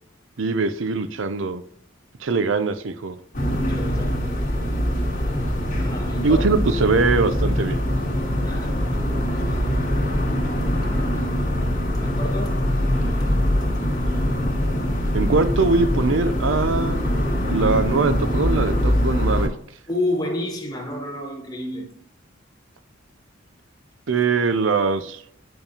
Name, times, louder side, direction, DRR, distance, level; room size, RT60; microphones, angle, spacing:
voice 1, 0.4-1.6 2.2-3.2 6.2-7.8 15.1-17.0 17.5-19.5 24.1-25.2, right 4 dB, 75° right, 0.6 m, -22 dB
sound 1, 3.3-19.5, equal, 45° left, 1.5 m, -23 dB
voice 2, 3.6-4.3 5.7-6.5 8.4-8.9 9.5-10.1 12.0-12.7 13.6-13.7 19.9-22.0, left 1 dB, 20° left, 1.5 m, -30 dB
8.9 x 5.3 x 2.8 m
head